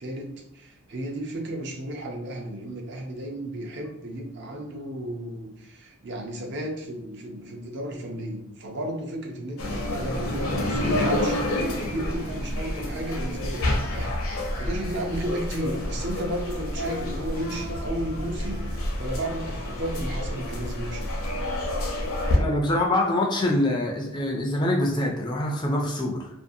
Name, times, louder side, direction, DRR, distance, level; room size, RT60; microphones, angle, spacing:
voice 1, 0.0-21.1, right 1 dB, 50° right, 2 dB, 0.5 m, -34 dB
sound 1, 9.6-22.4, left 1 dB, 70° left, 0.6 m, -28 dB
voice 2, 22.3-26.3, left 1 dB, 20° left, 0 dB, 0.3 m, -25 dB
2.6 x 2.4 x 2.6 m, 0.89 s
head